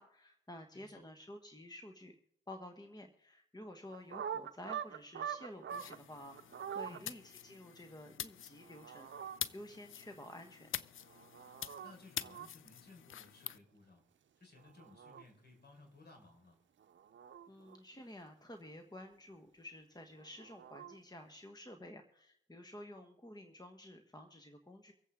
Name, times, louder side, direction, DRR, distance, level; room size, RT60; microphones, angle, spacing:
voice 1, 0.0-2.2 2.5-9.1 9.5-10.7 17.5-24.9, left 1 dB, 20° left, 5 dB, 1.4 m, -51 dB
sound 1, 3.9-6.0 6.3-7.0 8.6-9.4 11.0-11.9 12.2-12.5 14.6-15.2 16.8-17.8 20.2-21.0, right 8 dB, 65° right, 0.7 m, -44 dB
sound 2, 5.7-13.6, left 10 dB, 70° left, 0.5 m, -46 dB
voice 2, 11.8-14.0 14.4-16.6, left 2 dB, 50° left, 2 dB, 4.8 m, -59 dB
24.5 x 8.3 x 3.7 m, 0.77 s
supercardioid pair, 45°, 21 cm